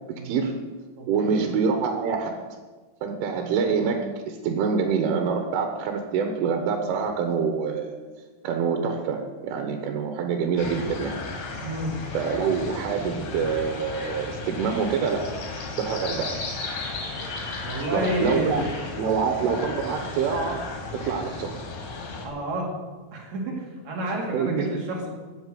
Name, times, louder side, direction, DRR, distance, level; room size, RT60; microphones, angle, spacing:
voice 1, 0.1-0.6 1.1-2.4 3.0-8.0 8.4-11.2 12.2-15.3 15.8-16.4 17.9-18.6 18.9-21.6 24.3-24.8, right 5 dB, 85° right, 4 dB, 3.8 m, -26 dB
voice 2, 1.0-1.4 11.6-12.0 17.6-18.7 22.2-22.7 23.1-25.1, right 1 dB, 40° right, -2 dB, 4.1 m, -30 dB
sound 1, 10.6-22.3, left 3 dB, 60° left, 4.3 m, -35 dB
14.0 x 8.4 x 9.3 m, 1.4 s
omnidirectional pair, 5.5 m